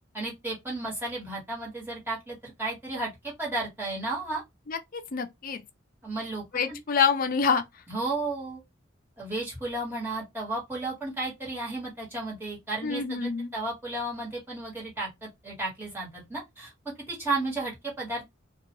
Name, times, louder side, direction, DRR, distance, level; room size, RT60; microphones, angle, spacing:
voice 1, 0.1-4.4 6.0-6.4 6.7-6.8 7.9-8.6 9.2-16.7 17.1-18.2, right 2 dB, 10° right, 1.3 m, -33 dB
voice 2, 4.7-5.6 6.5-7.6 12.8-13.5, left 6 dB, 45° left, 0.4 m, -26 dB
2.4 x 2.2 x 2.9 m
head